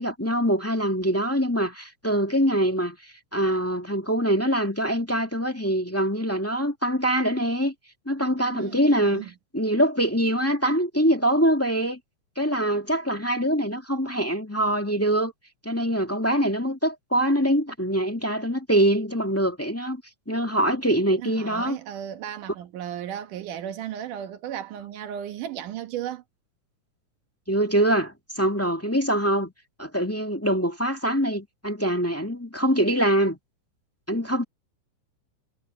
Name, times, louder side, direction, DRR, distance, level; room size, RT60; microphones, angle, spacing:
voice 1, 0.0-3.0 3.3-7.7 8.0-9.2 9.5-12.0 12.3-15.3 15.6-20.0 20.3-21.8 27.5-29.5 29.8-33.4 34.1-34.4, right 1 dB, 5° left, 1.4 m, -24 dB
voice 2, 8.5-9.3 21.2-26.2, right 10 dB, 85° right, 2.9 m, -35 dB
omnidirectional pair, 3.6 m